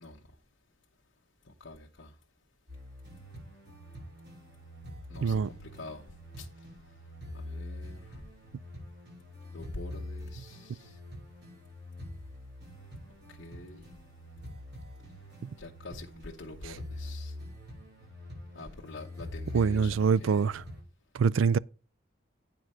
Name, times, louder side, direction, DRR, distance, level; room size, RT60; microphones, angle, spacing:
voice 1, 1.6-2.1 5.1-6.0 6.4-6.5 7.3-8.2 9.5-11.0 13.4-13.9 15.6-17.3 18.5-20.5, left 2 dB, 60° left, 1.1 m, -46 dB
sound 1, 2.7-20.8, left 1 dB, 60° right, 5.7 m, -45 dB
voice 2, 19.5-20.6 21.1-21.6, right 6 dB, 75° right, 0.4 m, -24 dB
9.1 x 4.9 x 5.5 m
head